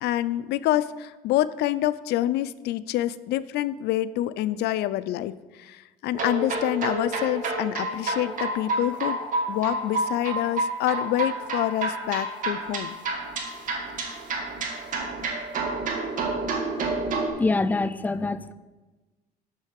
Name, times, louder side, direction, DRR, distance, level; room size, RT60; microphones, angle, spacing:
voice 1, 0.0-9.2 9.5-13.0, left 14 dB, 75° left, 15 dB, 0.4 m, -27 dB
sound 1, 6.1-17.3, right 3 dB, 50° right, 1.9 m, -29 dB
voice 2, 17.4-18.5, left 3 dB, 10° left, 13 dB, 0.4 m, -25 dB
6.5 x 6.3 x 7.6 m, 1.2 s
cardioid pair, 110°, 17 cm